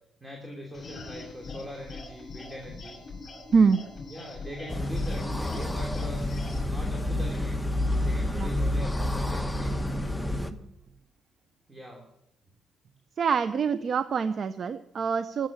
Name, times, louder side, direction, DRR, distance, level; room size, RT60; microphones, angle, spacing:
voice 1, 0.2-3.0 4.1-6.3 6.6-7.6 8.0-9.7 11.7-12.1, equal, 10° right, 0 dB, 3.0 m, -41 dB
sound 1, 0.7-6.7, left 3 dB, 40° left, 6.8 m, -43 dB
sound 2, 4.7-10.5, left 1 dB, 10° left, 1.2 m, -29 dB
voice 2, 13.2-15.5, right 5 dB, 50° right, 12 dB, 0.6 m, -25 dB
14.0 x 7.5 x 9.9 m, 0.80 s
cardioid pair, 90°, 0 cm